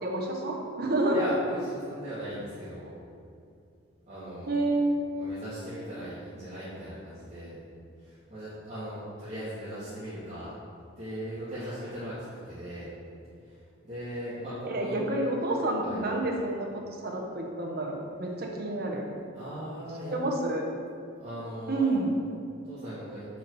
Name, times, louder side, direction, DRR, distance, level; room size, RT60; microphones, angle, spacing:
voice 1, 0.0-1.2 4.5-5.0 14.7-19.1 20.1-20.7 21.7-22.1, right 2 dB, 50° right, 0 dB, 1.0 m, -29 dB
voice 2, 1.1-3.0 4.1-4.6 5.1-7.6 8.0-10.5 10.9-12.9 13.4-15.0 15.8-16.0 19.3-20.2 21.2-21.9 22.6-23.3, equal, 35° right, -12 dB, 1.7 m, -38 dB
7.7 x 4.7 x 4.7 m, 2.4 s
head